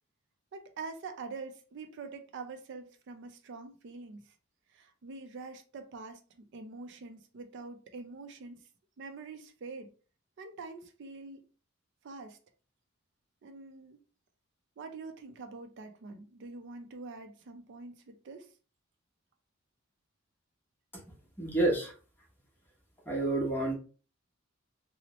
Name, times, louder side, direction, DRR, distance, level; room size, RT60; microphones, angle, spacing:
voice 1, 0.5-4.3 4.7-8.6 9.0-9.9 10.4-11.4 12.0-12.4 13.4-14.0 14.8-18.5, right 4 dB, 60° right, 0.4 m, -45 dB
voice 2, 21.4-21.9 23.1-23.7, right 2 dB, 10° left, 0.9 m, -28 dB
2.8 x 2.0 x 2.9 m
head